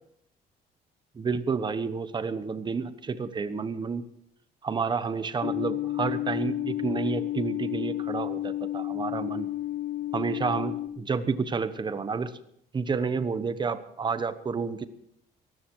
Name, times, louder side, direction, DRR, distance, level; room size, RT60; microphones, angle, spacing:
voice 1, 1.1-4.0 4.6-9.5 10.1-12.3 12.7-14.9, right 5 dB, 25° right, 13 dB, 1.1 m, -30 dB
sound 1, 5.4-10.9, left 14 dB, 55° left, 1.4 m, -31 dB
18.0 x 14.5 x 4.7 m, 0.71 s
cardioid pair, 110°, 17 cm